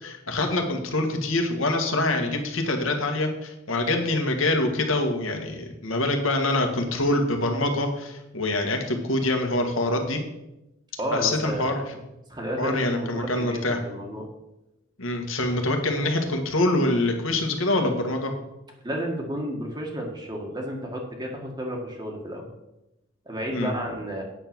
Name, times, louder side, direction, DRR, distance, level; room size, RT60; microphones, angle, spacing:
voice 1, 0.0-10.2 11.1-11.8 12.6-13.8 15.0-18.3 23.5-23.7, left 2 dB, 85° left, 4 dB, 1.7 m, -25 dB
voice 2, 11.0-11.7 12.3-14.3 18.8-22.5 23.2-24.2, equal, 20° right, 0 dB, 1.6 m, -31 dB
8.8 x 7.2 x 6.0 m, 0.91 s
head